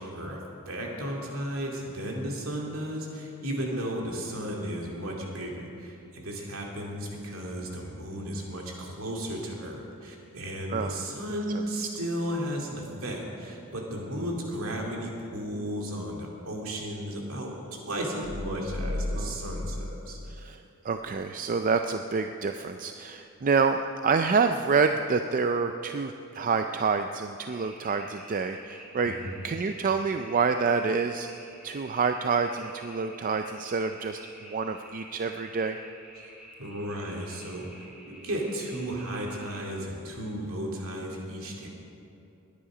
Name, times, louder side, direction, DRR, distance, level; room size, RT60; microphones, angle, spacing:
voice 1, 0.0-20.2 29.0-29.3 36.2-36.3 36.6-41.7, equal, 65° right, -1 dB, 2.6 m, -34 dB
sound 1, 18.2-21.2, left 1 dB, 65° left, 0.9 m, -35 dB
voice 2, 20.3-29.2 29.4-31.3 31.6-34.2 34.5-35.8, right 5 dB, 35° right, 7 dB, 0.4 m, -27 dB
sound 2, 27.4-39.6, equal, 5° right, 2.7 m, -50 dB
20.5 x 10.0 x 5.0 m, 2.7 s
head